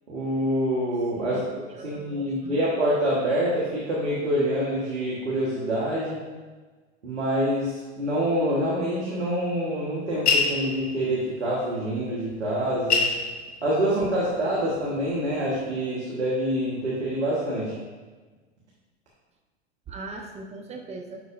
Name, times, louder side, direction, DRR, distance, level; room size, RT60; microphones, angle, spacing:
voice 1, 0.1-1.4 1.7-6.2 7.0-13.1 13.6-17.7, equal, 85° right, -7 dB, 1.5 m, -26 dB
voice 2, 1.2-1.5 1.7-2.6 19.9-21.2, right 3 dB, 20° right, 2 dB, 0.6 m, -39 dB
sound 1, 10.3-11.2 12.3-12.4 12.7-14.3 14.8-15.4, left 5 dB, 70° left, 1.2 m, -25 dB
10.0 x 4.0 x 2.6 m, 1.3 s
hypercardioid pair, 95°, 34 cm